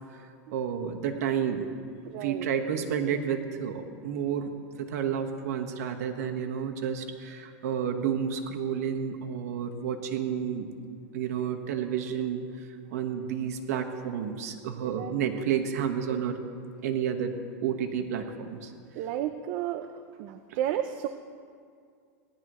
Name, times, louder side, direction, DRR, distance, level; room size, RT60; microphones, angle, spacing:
voice 1, 0.5-1.7 2.2-4.5 4.8-10.7 11.1-12.4 12.9-16.4 16.8-17.3 17.6-18.7, right 8 dB, 80° right, 4 dB, 1.3 m, -30 dB
voice 2, 2.1-2.5 14.8-15.4 16.1-16.2 19.0-19.9 20.2-21.1, right 11 dB, 55° right, 8 dB, 0.5 m, -33 dB
19.0 x 11.5 x 3.1 m, 2.2 s
supercardioid pair, 140°, 8 cm